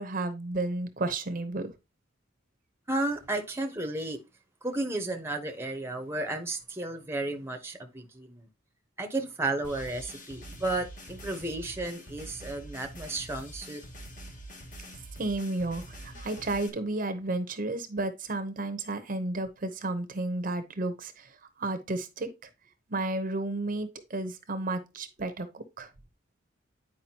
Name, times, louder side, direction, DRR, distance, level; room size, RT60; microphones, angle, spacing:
voice 1, 0.0-1.7 15.2-22.5 22.9-25.9, right 2 dB, 45° right, 0.8 m, -32 dB
voice 2, 2.9-4.2 4.6-8.5 9.0-13.8, right 2 dB, 15° right, 0.8 m, -33 dB
sound 1, 9.6-16.7, right 1 dB, 40° left, 1.5 m, -45 dB
9.1 x 4.9 x 2.8 m
head